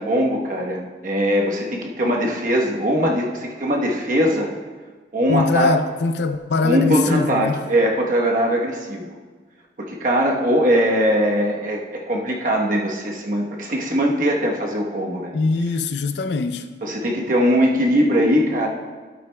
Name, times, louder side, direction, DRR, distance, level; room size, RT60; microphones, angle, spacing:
voice 1, 0.0-4.5 5.1-5.7 6.6-9.1 9.8-15.3 16.8-18.7, equal, 45° right, 1.0 m, -21 dB
voice 2, 5.3-7.6 15.3-16.6, left 3 dB, 75° left, 0.5 m, -22 dB
12.5 x 8.3 x 2.2 m
head